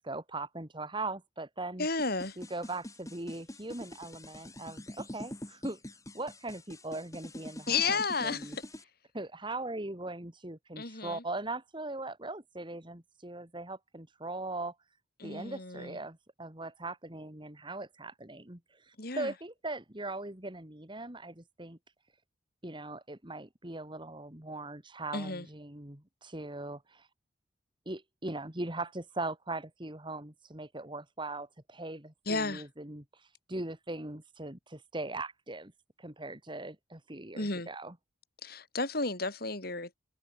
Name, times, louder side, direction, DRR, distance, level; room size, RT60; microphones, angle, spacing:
voice 1, 0.0-1.9 2.4-5.8 6.1-8.6 9.1-14.7 15.2-21.8 22.6-27.1 27.9-35.7 36.0-37.9, right 2 dB, 25° right, 2.6 m, -40 dB
voice 2, 1.8-2.4 7.7-8.5 10.8-11.2 15.2-16.0 19.0-19.3 25.1-25.5 32.3-32.6 37.3-37.7 38.4-39.9, left 4 dB, 55° left, 4.9 m, -33 dB
sound 1, 2.0-8.8, left 1 dB, 15° left, 5.0 m, -45 dB
head